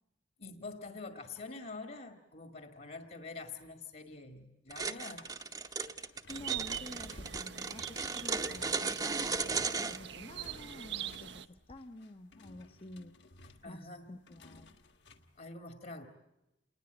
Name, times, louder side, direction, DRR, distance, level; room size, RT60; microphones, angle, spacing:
voice 1, 0.4-5.3 13.6-14.1 15.4-16.1, left 3 dB, 50° left, 7 dB, 1.9 m, -46 dB
sound 1, 4.7-10.0, right 4 dB, 20° right, 0.9 m, -35 dB
sound 2, 4.9-15.4, left 2 dB, 70° left, 1.9 m, -57 dB
voice 2, 6.3-13.1 13.6-14.7, left 1 dB, 30° left, 8 dB, 0.9 m, -50 dB
sound 3, 6.3-11.5, right 10 dB, 70° right, 0.9 m, -43 dB
28.5 x 20.0 x 8.1 m, 0.91 s
head